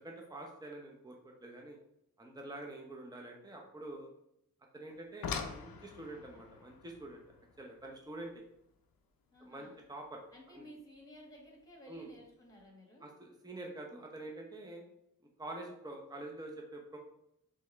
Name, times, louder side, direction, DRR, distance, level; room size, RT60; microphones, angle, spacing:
voice 1, 0.0-1.8 2.2-4.1 4.7-7.2 7.6-8.3 9.4-10.2 10.5-10.6 11.9-12.1 13.0-14.8 15.4-17.0, right 2 dB, 10° right, 0 dB, 0.8 m, -46 dB
sound 1, 4.9-10.0 11.3-11.4 12.1-12.3 12.6-12.7, left 5 dB, 90° left, 0.5 m, -45 dB
voice 2, 9.3-9.8 10.3-13.2, equal, 10° left, -1 dB, 1.5 m, -55 dB
3.5 x 3.4 x 3.2 m, 0.79 s
cardioid pair, 45°, 34 cm